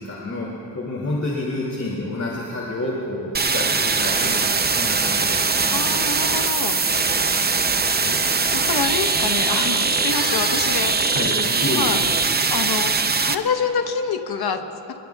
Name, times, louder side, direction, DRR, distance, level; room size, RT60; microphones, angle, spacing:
voice 1, 0.0-5.8 7.8-8.2 11.1-12.1, left 2 dB, 40° left, -4 dB, 2.6 m, -29 dB
sound 1, 3.3-13.3, right 4 dB, 25° right, 0.6 m, -21 dB
voice 2, 5.7-7.2 8.0-8.1 8.5-12.0 12.5-12.9 13.2-14.6, left 5 dB, 60° left, 5 dB, 1.2 m, -27 dB
27.0 x 21.5 x 2.4 m, 3.0 s
wide cardioid pair, 125°, 43 cm